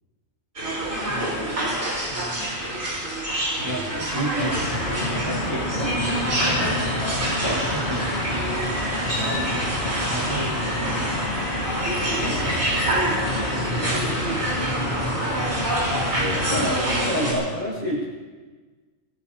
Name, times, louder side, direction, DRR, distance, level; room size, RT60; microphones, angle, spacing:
sound 1, 0.6-17.3, right 1 dB, 65° right, 4.9 m, -27 dB
voice 1, 1.1-1.8 2.1-2.5 3.6-4.6 5.1-5.7 6.3-7.2 7.7-8.1 9.1-9.7 10.1-11.3 12.2-12.4 12.7-13.7, right 1 dB, 20° right, -5 dB, 1.9 m, -34 dB
voice 2, 3.6-4.6 5.7-5.9 6.5-6.8 12.2-12.8 16.2-18.1, equal, 35° left, -4 dB, 6.5 m, -29 dB
Traffic noise roadway noise, 4.4-16.8, left 1 dB, 50° left, 1.8 m, -29 dB
25.5 x 18.0 x 2.9 m, 1.4 s
omnidirectional pair, 1.5 m